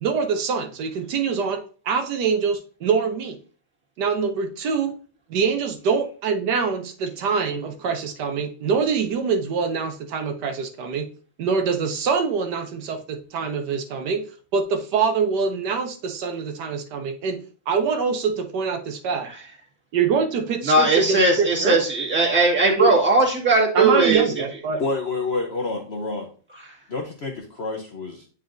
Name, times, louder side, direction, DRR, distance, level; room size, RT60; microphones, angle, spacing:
voice 1, 0.0-1.6 1.9-3.4 4.0-4.9 5.3-11.0 11.4-14.2 14.5-17.4 17.7-19.3 19.9-21.8 22.8-22.9 23.7-24.8, right 5 dB, 65° right, 6 dB, 1.2 m, -24 dB
voice 2, 20.7-24.2, right 3 dB, 5° right, -3 dB, 1.6 m, -18 dB
voice 3, 24.8-26.3 26.9-28.3, left 3 dB, 60° left, 1 dB, 0.6 m, -28 dB
9.2 x 4.1 x 2.6 m, 0.40 s
omnidirectional pair, 2.2 m